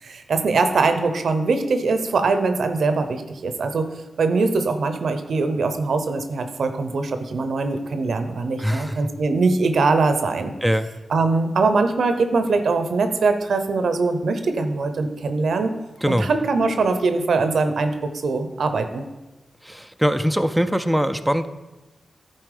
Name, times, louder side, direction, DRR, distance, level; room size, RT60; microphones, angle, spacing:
voice 1, 0.0-3.9 4.2-10.5 11.1-15.7 16.1-19.0, right 3 dB, 80° right, 8 dB, 0.7 m, -22 dB
voice 2, 8.6-9.0 10.6-10.9 16.0-16.3 19.6-21.5, equal, 5° right, 8 dB, 0.5 m, -22 dB
11.0 x 4.4 x 4.9 m, 1.1 s
cardioid pair, 50°, 0 cm